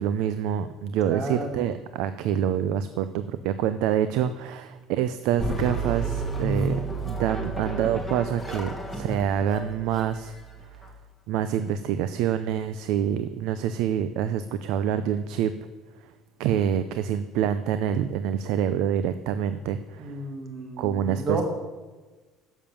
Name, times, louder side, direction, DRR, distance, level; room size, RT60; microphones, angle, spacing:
voice 1, 0.0-10.4 10.7-10.9 11.3-15.5 16.4-20.2 20.8-21.4, right 9 dB, 70° right, 11 dB, 0.5 m, -26 dB
voice 2, 1.1-1.5 20.0-21.4, right 3 dB, 35° right, 3 dB, 1.9 m, -32 dB
sound 1, 5.4-10.9, right 2 dB, ahead, 1.7 m, -31 dB
10.5 x 7.2 x 7.0 m, 1.3 s
cardioid pair, 165°, 0 cm